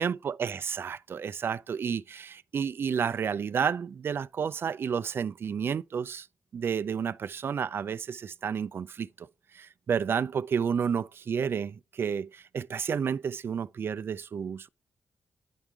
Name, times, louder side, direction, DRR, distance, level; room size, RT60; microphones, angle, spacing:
voice 1, 0.0-6.3 6.5-9.3 9.5-14.7, right 7 dB, 55° right, 0.3 m, -31 dB
9.9 x 3.7 x 4.5 m
cardioid pair, 85°, 5 cm